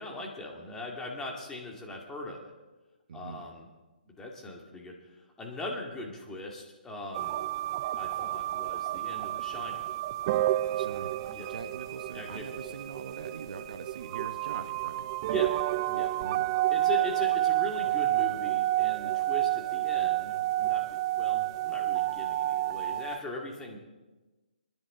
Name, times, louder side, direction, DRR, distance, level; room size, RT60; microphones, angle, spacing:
voice 1, 0.0-2.5 3.1-3.7 4.1-7.4 8.0-9.8 11.3-11.5 12.1-12.6 15.3-15.6 15.9-16.1 16.7-23.8, left 2 dB, 10° left, -1 dB, 2.2 m, -40 dB
voice 2, 3.1-3.5 10.7-11.2 11.5-15.1 16.2-16.5, right 5 dB, 60° right, 8 dB, 1.1 m, -43 dB
sound 1, 7.1-23.2, right 15 dB, 30° right, 0.4 m, -30 dB
27.5 x 10.5 x 3.9 m, 1.2 s
hypercardioid pair, 145°, 5 cm